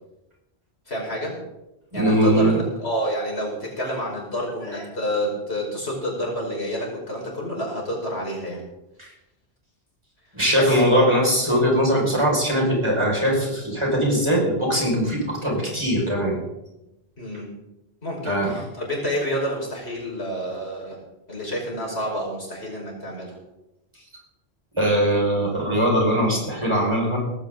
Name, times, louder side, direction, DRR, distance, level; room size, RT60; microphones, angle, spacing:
voice 1, 0.9-1.3 1.9-8.6 10.5-10.8 17.2-17.5 18.0-21.0 21.3-23.4, equal, 80° left, -2 dB, 5.6 m, -29 dB
voice 2, 1.9-2.6 4.7-4.8 9.0-9.1 10.3-16.4 18.2-18.6 24.8-27.2, equal, 25° right, -2 dB, 6.1 m, -21 dB
18.5 x 16.0 x 4.0 m, 0.93 s
omnidirectional pair, 1.1 m